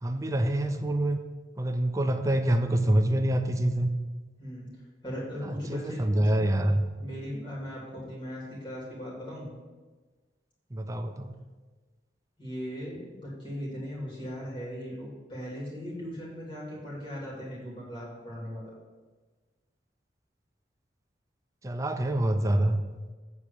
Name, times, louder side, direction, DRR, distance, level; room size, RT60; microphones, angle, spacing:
voice 1, 0.0-1.2 1.6-3.9 5.4-6.8 10.7-11.3 21.6-22.8, right 1 dB, 20° right, 6 dB, 0.5 m, -26 dB
voice 2, 4.4-4.7 5.0-6.4 7.0-9.5 12.4-18.7, equal, 30° left, -6 dB, 3.1 m, -38 dB
8.4 x 4.4 x 6.6 m, 1.3 s
head